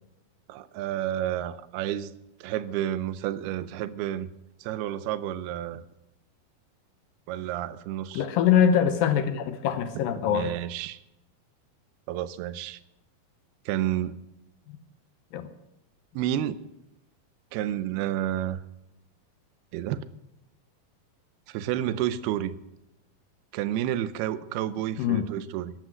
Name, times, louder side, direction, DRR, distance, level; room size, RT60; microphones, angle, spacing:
voice 1, 0.5-2.1 2.4-4.3 4.6-5.8 7.3-8.3 10.3-11.0 12.1-12.8 13.7-14.2 16.1-16.6 17.5-18.6 19.7-20.1 21.5-22.6 23.5-25.7, right 12 dB, 90° right, 15 dB, 2.7 m, -30 dB
voice 2, 8.1-10.5 15.3-15.5 25.0-25.3, left 8 dB, 75° left, 10 dB, 2.5 m, -23 dB
14.0 x 11.5 x 6.3 m, 0.88 s
omnidirectional pair, 4.4 m